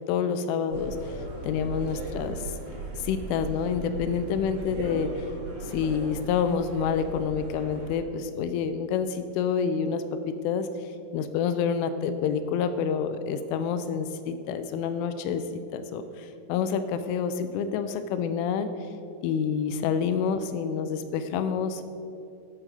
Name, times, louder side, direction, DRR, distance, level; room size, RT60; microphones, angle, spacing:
voice 1, 0.1-1.1 1.4-2.4 3.0-5.1 5.7-10.7 11.1-18.7 19.2-21.8, left 7 dB, 85° left, 10 dB, 3.1 m, -28 dB
sound 1, 0.7-8.0, right 2 dB, 65° right, 4.2 m, -37 dB
11.0 x 9.0 x 4.8 m, 2.5 s
omnidirectional pair, 5.5 m